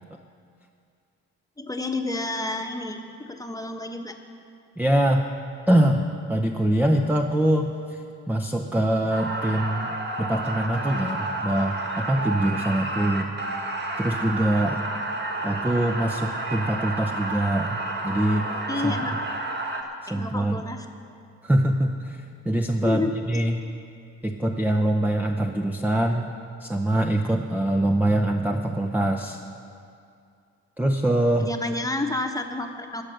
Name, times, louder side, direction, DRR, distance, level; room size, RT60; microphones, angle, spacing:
voice 1, 1.6-3.0 3.3-4.1 18.7-19.1 20.1-20.9 22.8-23.2 31.4-33.0, left 2 dB, 10° left, 4 dB, 1.1 m, -29 dB
voice 2, 4.8-5.2 5.7-13.3 14.0-14.8 15.4-18.5 18.8-18.9 20.1-20.6 21.4-23.6 24.2-26.3 26.6-29.4 30.8-31.5, right 1 dB, 5° right, 2 dB, 0.7 m, -24 dB
sound 1, 9.1-19.8, right 2 dB, 35° right, 1.7 m, -30 dB
19.5 x 6.6 x 6.4 m, 2.4 s
cardioid pair, 90°, 30 cm